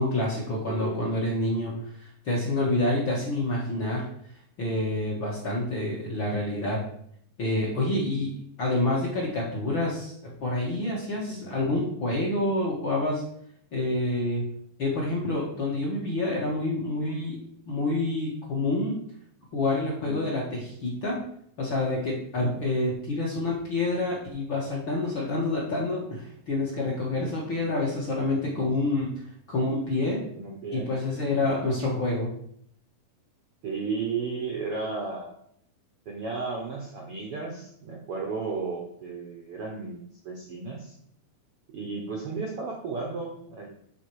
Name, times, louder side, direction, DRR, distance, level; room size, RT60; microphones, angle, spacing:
voice 1, 0.0-4.0 4.6-6.8 7.4-8.3 8.6-13.2 13.7-14.4 14.8-17.4 17.7-18.9 19.5-21.2 21.6-29.1 29.5-30.2 30.7-32.3, left 2 dB, 45° left, -4 dB, 1.7 m, -27 dB
voice 2, 0.7-1.0 11.3-11.4 20.0-20.2 22.4-22.5 30.4-30.9 31.2-31.3 33.6-35.3 36.0-40.0 40.2-40.9 41.7-43.7, right 4 dB, 65° right, 0 dB, 1.5 m, -34 dB
11.0 x 4.1 x 4.8 m, 0.68 s
omnidirectional pair, 4.2 m